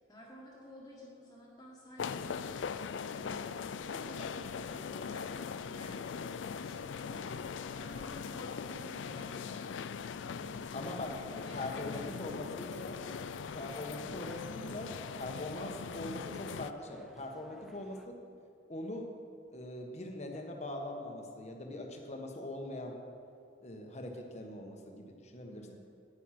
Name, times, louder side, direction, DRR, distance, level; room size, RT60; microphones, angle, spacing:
voice 1, 0.0-2.7 3.1-6.3 6.6-9.7 10.1-10.6 11.3-12.2 25.4-25.7, equal, 20° left, -5 dB, 1.7 m, -52 dB
sound 1, 2.0-16.7, left 6 dB, 80° left, 0.4 m, -41 dB
sound 2, 10.1-18.1, equal, ahead, 0.6 m, -60 dB
voice 2, 10.7-11.2 11.5-13.0 13.5-18.2 18.7-19.1 19.5-22.9 23.6-25.7, left 1 dB, 35° left, 2 dB, 1.3 m, -42 dB
10.0 x 9.6 x 5.9 m, 2.4 s
head